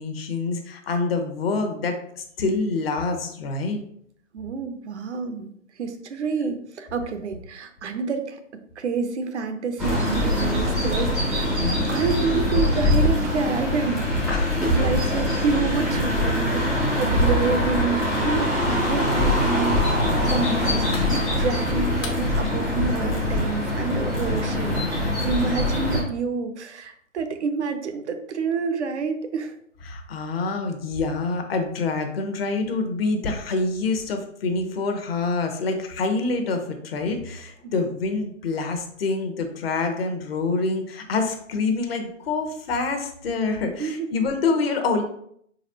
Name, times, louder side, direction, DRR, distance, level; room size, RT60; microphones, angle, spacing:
voice 1, 0.0-3.8 11.6-11.9 14.3-15.1 29.8-45.0, left 3 dB, 45° left, 5 dB, 0.9 m, -26 dB
voice 2, 4.3-5.5 5.8-8.4 8.8-11.5 11.9-29.5 37.6-37.7 43.8-44.1, right 5 dB, 60° right, 7 dB, 0.7 m, -28 dB
sound 1, 9.8-26.0, left 1 dB, ahead, 0.5 m, -23 dB
sound 2, 15.9-22.2, left 1 dB, 75° left, 1.1 m, -33 dB
4.3 x 4.0 x 2.8 m, 0.67 s
hypercardioid pair, 135°, 39 cm